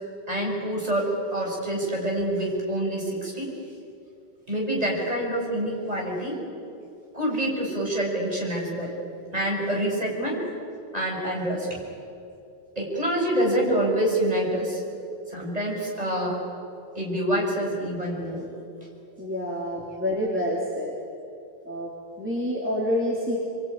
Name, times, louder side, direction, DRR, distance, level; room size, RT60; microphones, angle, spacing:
voice 1, 0.3-3.5 4.5-6.4 7.1-8.9 9.3-10.4 10.9-11.8 12.7-14.8 15.3-16.4 16.9-18.5, right 1 dB, 35° right, -2 dB, 6.7 m, -26 dB
voice 2, 19.2-21.0 21.7-23.4, left 1 dB, 10° right, -4 dB, 3.5 m, -28 dB
27.0 x 23.0 x 9.7 m, 2.7 s
omnidirectional pair, 1.1 m